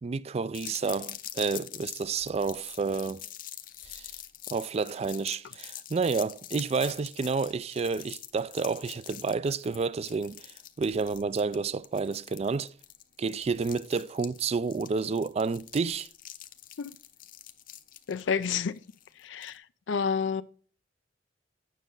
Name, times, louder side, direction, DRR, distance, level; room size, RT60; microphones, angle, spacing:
voice 1, 0.0-3.2 3.9-4.1 4.5-12.7 13.2-16.1, right 4 dB, 35° right, 0.3 m, -30 dB
sound 1, 0.5-19.6, left 12 dB, 50° left, 0.7 m, -45 dB
voice 2, 18.1-18.8 19.2-20.4, left 6 dB, 80° left, 0.4 m, -30 dB
9.2 x 6.3 x 3.9 m
head